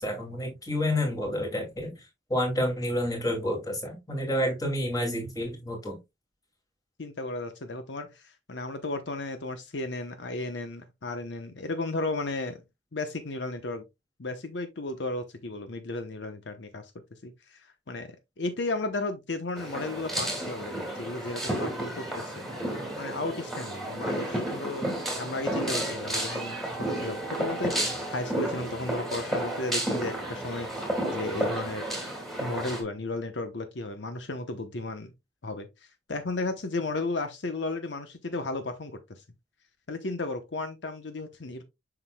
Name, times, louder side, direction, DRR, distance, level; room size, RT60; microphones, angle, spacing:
voice 1, 0.0-1.9 2.3-6.0, left 1 dB, 20° left, 2.3 m, -29 dB
voice 2, 7.0-12.6 12.9-13.8 14.2-22.5 23.0-24.9 25.1-31.9 32.4-35.1 35.4-39.2 39.9-41.6, left 2 dB, 70° left, 0.9 m, -34 dB
sound 1, 19.6-32.8, right 1 dB, ahead, 2.3 m, -32 dB
7.7 x 6.0 x 2.2 m
head